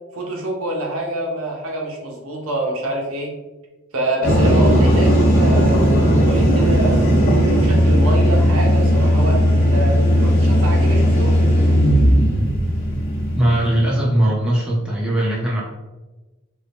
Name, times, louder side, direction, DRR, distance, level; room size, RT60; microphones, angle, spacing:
voice 1, 0.1-3.3 3.9-7.0 7.3-11.3, right 1 dB, 85° right, -1 dB, 0.8 m, -26 dB
sound 1, 4.2-14.0, equal, 45° left, 1.1 m, -16 dB
voice 2, 13.3-15.6, right 1 dB, 5° right, -6 dB, 0.6 m, -19 dB
2.7 x 2.7 x 3.4 m, 1.1 s
head